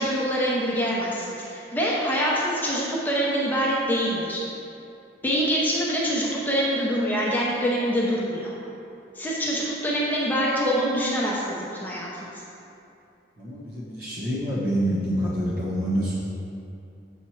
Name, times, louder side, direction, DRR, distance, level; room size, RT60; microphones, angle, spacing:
voice 1, 0.0-4.4 5.2-8.5 9.1-12.3, equal, 10° left, -5 dB, 0.8 m, -25 dB
voice 2, 13.4-16.1, equal, 50° right, -7 dB, 1.1 m, -27 dB
7.5 x 4.4 x 4.5 m, 2.7 s
head